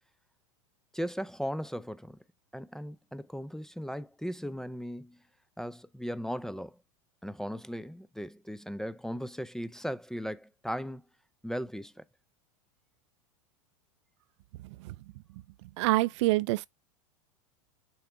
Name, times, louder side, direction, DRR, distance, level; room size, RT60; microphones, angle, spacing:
voice 1, 0.9-2.2 2.5-5.2 5.6-6.8 7.2-11.0 11.4-12.0, equal, 5° left, 0.4 m, -37 dB
voice 2, 14.6-14.9 15.8-16.7, right 18 dB, 60° right, 0.5 m, -27 dB
7.0 x 4.6 x 3.3 m
hypercardioid pair, 95°, 17 cm